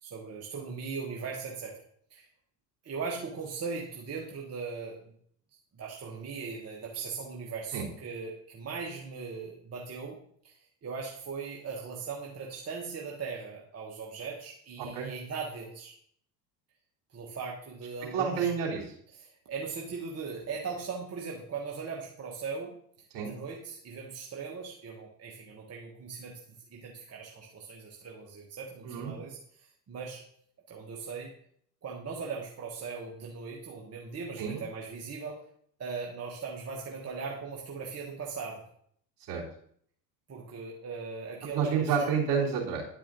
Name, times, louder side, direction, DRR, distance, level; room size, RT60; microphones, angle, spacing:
voice 1, 0.0-1.7 2.1-2.3 2.8-5.0 5.7-10.2 10.4-15.9 17.1-18.5 19.1-22.7 23.2-26.4 26.7-30.2 30.7-31.3 31.8-35.4 35.8-38.6 40.3-41.9, right 5 dB, 30° right, -1 dB, 1.4 m, -39 dB
voice 2, 18.1-18.8 23.1-23.3 28.8-29.2 34.4-34.6 39.3-39.4 41.5-42.8, right 6 dB, 55° right, -2 dB, 3.3 m, -29 dB
10.5 x 4.9 x 3.7 m, 0.64 s
hypercardioid pair, 80°, 48 cm